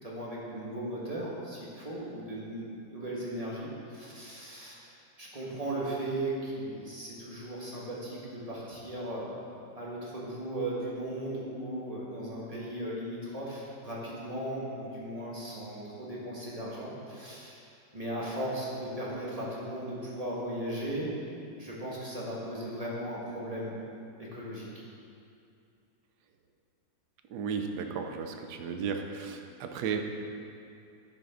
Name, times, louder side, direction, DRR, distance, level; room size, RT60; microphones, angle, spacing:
voice 1, 0.0-9.4 9.7-17.6 17.9-21.2 21.6-23.8 24.2-24.7, right 1 dB, 20° right, -6 dB, 1.6 m, -37 dB
voice 2, 27.3-30.0, right 6 dB, 65° right, 5 dB, 1.1 m, -34 dB
10.5 x 7.3 x 3.8 m, 2.5 s
omnidirectional pair, 2.2 m